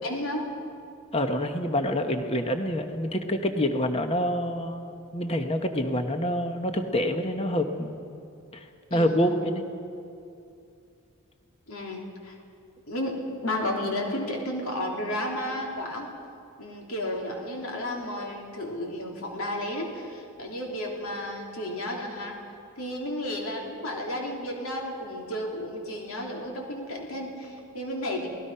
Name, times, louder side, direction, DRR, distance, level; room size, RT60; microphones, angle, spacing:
voice 1, 0.0-0.5 8.9-9.6 11.7-12.4 12.9-16.1 16.6-22.3 22.8-28.3, left 1 dB, 75° left, 0 dB, 3.3 m, -32 dB
voice 2, 1.1-4.8 5.1-8.0 8.5-8.6 8.9-9.6, equal, 25° left, 6 dB, 1.1 m, -27 dB
27.5 x 19.0 x 5.7 m, 2.5 s
head